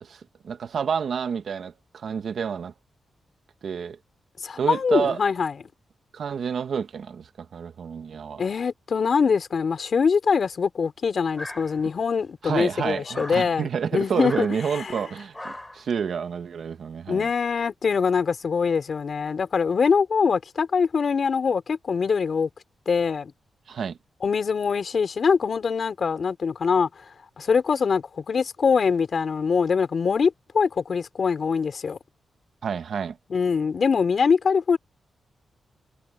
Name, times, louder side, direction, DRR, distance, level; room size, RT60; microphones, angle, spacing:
voice 1, 0.0-2.7 3.6-4.0 4.6-5.2 6.1-8.4 12.4-17.3 23.7-24.0 32.6-33.2, right 6 dB, 65° right, 1.5 m, -29 dB
voice 2, 4.4-5.5 8.4-14.5 14.7-15.0 17.1-22.5 22.9-23.3 24.2-26.9 27.4-32.0 33.3-34.8, left 5 dB, 50° left, 4.3 m, -23 dB
sound 1, 11.3-12.1 13.0-13.4 14.1-14.5 15.3-15.8, left 1 dB, 10° left, 3.4 m, -38 dB
wide cardioid pair, 115°, 0 cm